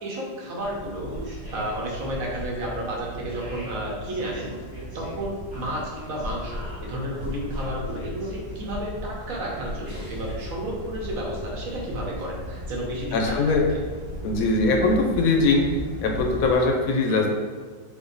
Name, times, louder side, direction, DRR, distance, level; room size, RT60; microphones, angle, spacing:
voice 1, 0.0-1.1 1.5-4.5 4.9-13.8 17.1-17.2, right 1 dB, 55° right, -3 dB, 1.2 m, -32 dB
sound 1, 0.6-16.5, equal, 25° right, 0.5 m, -36 dB
voice 2, 13.1-13.6 14.2-15.6 16.0-17.3, left 3 dB, 70° left, 2 dB, 0.9 m, -21 dB
4.2 x 2.7 x 3.9 m, 1.5 s
omnidirectional pair, 1.8 m